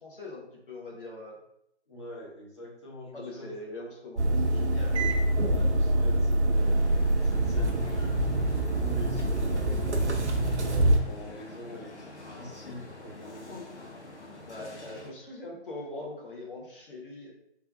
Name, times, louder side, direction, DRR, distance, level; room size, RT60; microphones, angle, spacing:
voice 1, 0.0-1.4 3.1-5.0 14.5-17.3, left 2 dB, 50° left, -3 dB, 1.2 m, -42 dB
voice 2, 1.9-3.5 5.4-6.8 7.3-8.3 8.8-13.6, equal, 25° left, -4 dB, 0.7 m, -44 dB
sound 1, 4.2-11.0, right 1 dB, 80° right, 0.7 m, -25 dB
sound 2, 6.5-15.1, left 2 dB, 80° left, 0.9 m, -46 dB
3.3 x 2.4 x 3.3 m, 0.77 s
figure-of-eight pair, 150°, 34 cm